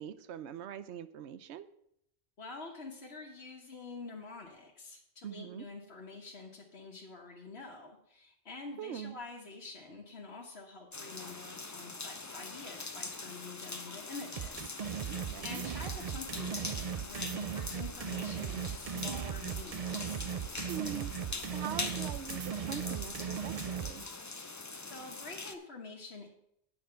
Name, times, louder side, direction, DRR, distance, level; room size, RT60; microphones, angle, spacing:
voice 1, 0.0-1.7 5.2-5.6 8.8-9.2 15.1-15.6 20.7-24.1, right 9 dB, 85° right, 14 dB, 0.9 m, -43 dB
voice 2, 2.4-20.3 24.9-26.3, left 3 dB, 70° left, -3 dB, 1.5 m, -47 dB
sound 1, 10.9-25.5, left 3 dB, 20° left, 0.5 m, -43 dB
sound 2, 14.4-23.9, right 8 dB, 55° right, 0.4 m, -38 dB
8.8 x 7.1 x 5.7 m, 0.74 s
omnidirectional pair, 1.1 m